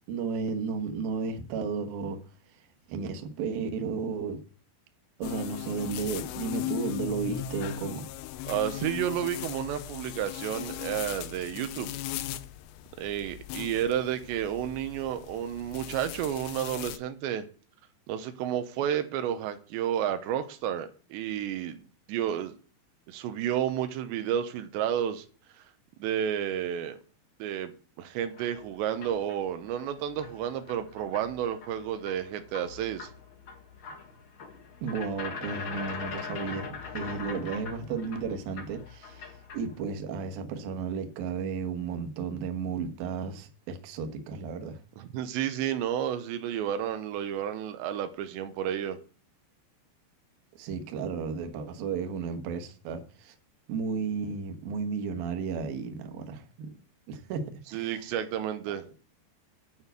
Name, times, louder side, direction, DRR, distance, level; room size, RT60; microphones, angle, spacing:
voice 1, 0.1-2.2 2.9-4.4 5.2-8.1 34.8-39.2 39.5-44.8 50.6-53.3 53.7-56.7 57.1-57.4 57.7-58.0, right 5 dB, 65° right, 2.8 m, -33 dB
sound 1, 5.2-17.0, left 13 dB, 85° left, 2.9 m, -38 dB
voice 2, 8.4-12.0 13.0-17.5 18.1-21.8 22.1-22.5 23.1-25.3 26.0-27.0 27.4-27.7 28.0-33.1 45.0-49.0 57.7-58.8, right 10 dB, 90° right, 3.2 m, -31 dB
sound 2, 28.2-39.8, left 5 dB, 65° left, 1.3 m, -42 dB
9.4 x 5.7 x 8.1 m
omnidirectional pair, 5.0 m